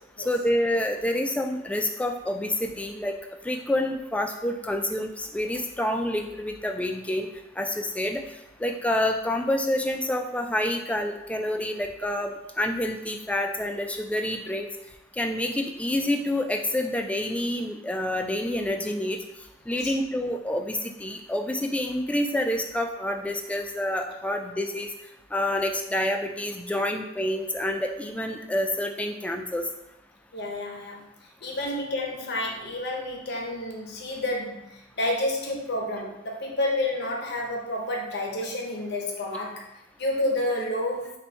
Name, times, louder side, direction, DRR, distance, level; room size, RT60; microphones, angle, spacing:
voice 1, 0.2-3.2 3.4-7.3 7.6-8.2 8.6-12.3 12.6-14.7 15.1-19.2 19.7-24.9 25.3-29.6, left 1 dB, 5° left, 4 dB, 0.3 m, -28 dB
voice 2, 30.3-31.0 31.4-39.6 40.0-41.1, left 1 dB, 55° left, 0 dB, 0.7 m, -29 dB
4.2 x 2.7 x 4.3 m, 0.91 s
head